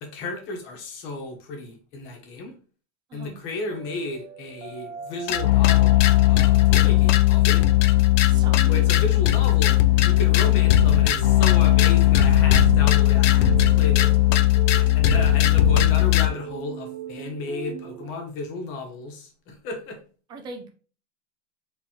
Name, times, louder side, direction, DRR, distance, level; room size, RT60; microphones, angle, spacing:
voice 1, 0.0-2.5 3.1-7.6 8.6-14.2 14.7-20.0, left 2 dB, 35° left, 3 dB, 1.3 m, -33 dB
voice 2, 3.1-3.4 8.3-8.7 20.3-20.7, right 3 dB, 15° right, 5 dB, 0.4 m, -39 dB
sound 1, 3.7-18.1, right 9 dB, 65° right, 0.9 m, -39 dB
sound 2, 5.3-16.3, left 13 dB, 85° left, 0.6 m, -18 dB
4.0 x 3.7 x 3.0 m, 0.39 s
supercardioid pair, 160°, 36 cm